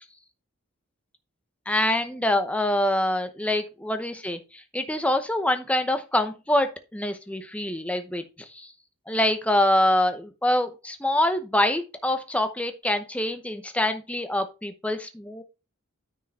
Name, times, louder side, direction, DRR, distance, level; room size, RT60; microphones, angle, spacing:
voice 1, 1.7-8.2 8.5-8.7 9.1-15.4, left 1 dB, 5° left, 8 dB, 0.8 m, -25 dB
9.5 x 4.6 x 4.2 m, 0.29 s
head